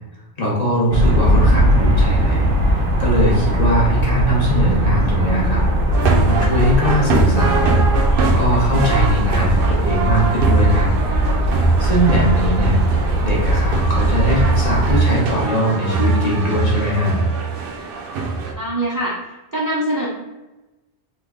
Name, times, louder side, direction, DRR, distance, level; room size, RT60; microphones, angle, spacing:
voice 1, 0.4-2.5 2.7-5.6 5.9-7.8 8.2-10.9 11.8-17.1, equal, 40° left, -5 dB, 0.9 m, -20 dB
sound 1, 0.9-15.0, equal, 85° right, 1.0 m, -19 dB
sound 2, 5.9-18.5, right 4 dB, 65° right, 0.7 m, -21 dB
voice 2, 18.5-19.2 19.5-20.1, right 1 dB, 35° right, -6 dB, 0.3 m, -22 dB
3.2 x 2.2 x 3.6 m, 1.0 s
omnidirectional pair, 1.2 m